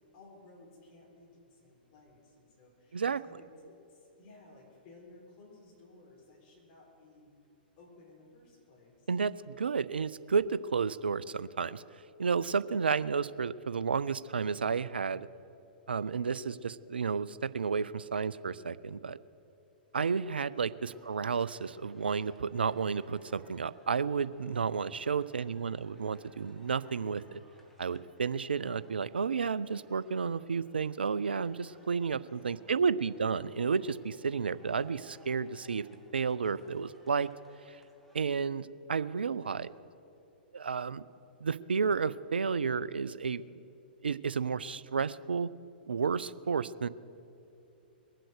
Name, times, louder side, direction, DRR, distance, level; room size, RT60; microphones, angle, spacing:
voice 1, 0.0-7.3 7.8-9.1 20.5-20.9 25.0-25.5 32.2-32.9 39.3-39.7, left 2 dB, 40° left, -2 dB, 4.3 m, -58 dB
voice 2, 9.1-11.8 12.2-15.3 15.9-19.2 19.9-27.4 27.8-35.9 36.1-37.3 38.1-39.7 40.5-41.0 41.4-43.4 44.0-45.5 45.9-46.9, right 5 dB, 75° right, 17 dB, 0.4 m, -32 dB
sound 1, 20.9-38.2, right 1 dB, 5° left, 1.7 m, -64 dB
21.5 x 7.7 x 6.5 m, 2.8 s
figure-of-eight pair, 110°, 5 cm